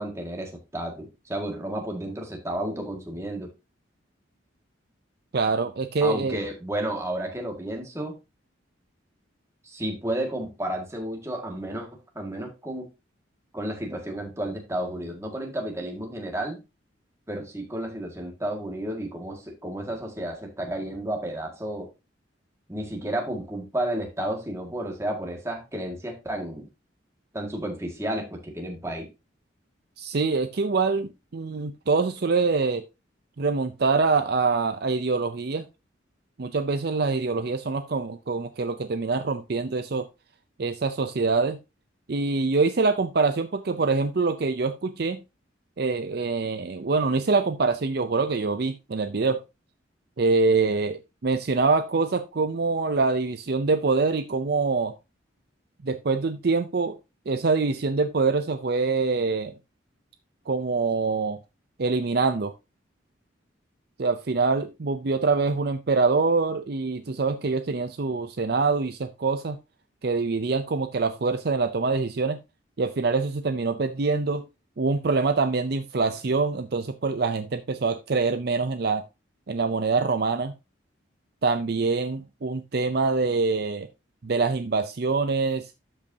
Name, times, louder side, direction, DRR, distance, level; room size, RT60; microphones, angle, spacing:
voice 1, 0.0-3.5 6.0-8.1 9.6-11.9 12.2-12.9 13.5-16.6 17.3-21.9 22.7-26.7 27.3-29.1, right 1 dB, 15° right, 1.9 m, -32 dB
voice 2, 5.3-6.4 30.0-32.8 33.4-35.7 36.4-40.1 40.6-41.6 42.1-45.2 45.8-49.4 50.2-54.9 55.8-57.0 57.3-59.5 60.5-61.4 61.8-62.5 64.0-69.6 70.0-72.4 72.8-74.4 74.8-79.0 79.5-80.5 81.4-83.9 84.2-85.7, right 4 dB, 55° right, 0.5 m, -25 dB
12.0 x 5.3 x 2.8 m
head